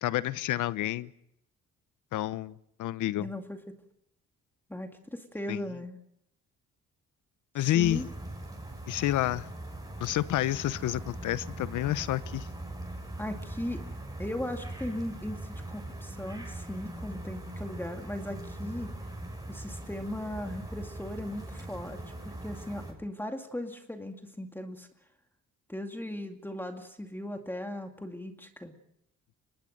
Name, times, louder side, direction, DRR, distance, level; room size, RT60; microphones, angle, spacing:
voice 1, 0.0-1.1 2.1-3.3 5.5-5.6 7.5-8.0 8.9-9.5 10.0-12.5, left 14 dB, 80° left, 0.9 m, -29 dB
voice 2, 3.2-3.6 4.7-6.0 7.7-8.1 13.2-13.8 14.2-18.9 19.5-24.9 25.7-28.7, left 1 dB, 5° left, 2.3 m, -38 dB
sound 1, 7.8-22.9, right 1 dB, 10° right, 7.0 m, -41 dB
24.5 x 20.0 x 6.6 m
cardioid pair, 90°, 30 cm